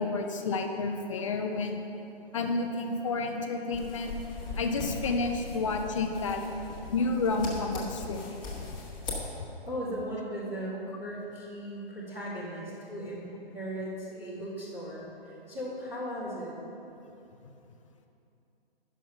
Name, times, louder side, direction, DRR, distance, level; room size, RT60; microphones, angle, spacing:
voice 1, 0.0-1.8 2.3-4.2 4.5-6.4 6.9-8.3, left 3 dB, 30° left, 4 dB, 0.7 m, -30 dB
sound 1, 3.7-9.2, left 3 dB, 15° left, 1.5 m, -39 dB
voice 2, 9.6-10.7 11.0-16.5, equal, 5° right, -15 dB, 0.4 m, -37 dB
10.5 x 6.5 x 5.5 m, 2.8 s
figure-of-eight pair, 135°, 31 cm